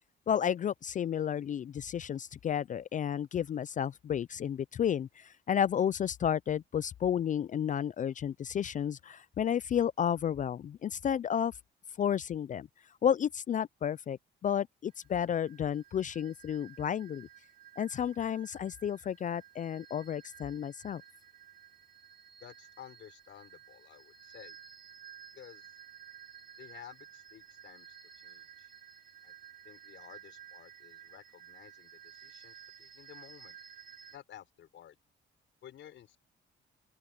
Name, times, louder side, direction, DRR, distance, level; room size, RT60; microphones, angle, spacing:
voice 1, 0.3-11.5 12.0-12.7 13.0-17.3 17.8-21.0, left 9 dB, 40° left, 0.4 m, -32 dB
sound 1, 14.9-34.2, right 9 dB, 45° right, 5.9 m, -54 dB
voice 2, 22.4-24.6 25.3-25.7 26.6-28.7 29.2-29.3 29.6-33.6 34.1-35.0 35.6-36.2, left 10 dB, 70° left, 5.4 m, -53 dB
open air
cardioid pair, 90°, 20 cm